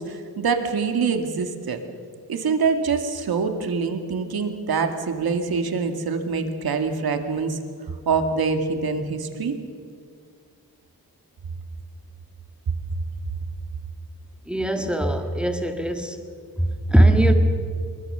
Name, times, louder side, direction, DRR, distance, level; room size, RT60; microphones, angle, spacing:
voice 1, 0.0-1.8 2.3-7.6 8.1-9.6, right 5 dB, 75° right, 6 dB, 2.1 m, -25 dB
voice 2, 14.5-16.2 16.6-17.3, right 1 dB, 5° right, 5 dB, 1.9 m, -20 dB
23.5 x 21.5 x 6.8 m, 2.2 s
wide cardioid pair, 125°, 37 cm